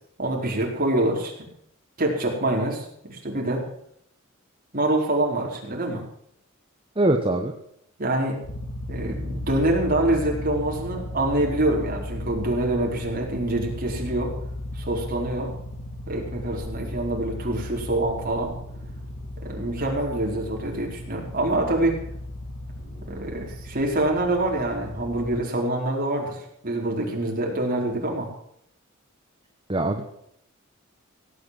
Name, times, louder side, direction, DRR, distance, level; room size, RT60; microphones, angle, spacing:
voice 1, 0.2-1.3 2.0-3.6 4.7-6.0 8.0-8.4 8.9-14.3 14.7-15.5 16.1-18.5 19.4-22.0 23.0-28.3, right 1 dB, 45° right, 0 dB, 4.5 m, -25 dB
voice 2, 7.0-7.5 29.7-30.0, right 2 dB, 25° right, 3 dB, 1.2 m, -22 dB
sound 1, 8.4-25.4, left 1 dB, 60° left, 4.1 m, -35 dB
17.5 x 8.7 x 7.7 m, 0.70 s
head